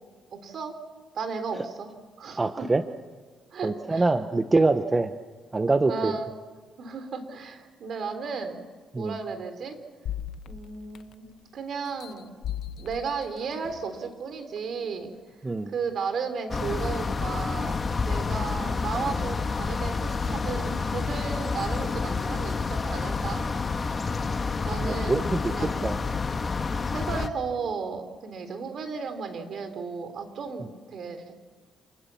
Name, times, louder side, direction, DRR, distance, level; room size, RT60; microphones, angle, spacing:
voice 1, 0.4-0.7 1.1-1.9 2.2-2.4 3.5-4.1 5.9-6.3 6.8-8.5 9.0-9.8 10.5-12.3 12.8-15.1 15.7-23.4 24.6-25.8 26.9-31.4, right 5 dB, 60° right, 8 dB, 3.9 m, -34 dB
voice 2, 2.4-2.8 3.6-5.1 5.5-6.2 8.9-9.2 15.4-15.7 24.8-25.5 25.8-26.0, right 3 dB, 25° right, 9 dB, 1.0 m, -24 dB
sound 1, 10.1-11.4 11.9-14.0 14.6-14.7, left 10 dB, 75° left, 1.1 m, -38 dB
sound 2, 16.5-27.3, left 4 dB, 35° left, 1.5 m, -29 dB
28.5 x 20.0 x 7.2 m, 1.4 s
cardioid pair, 90°, 0 cm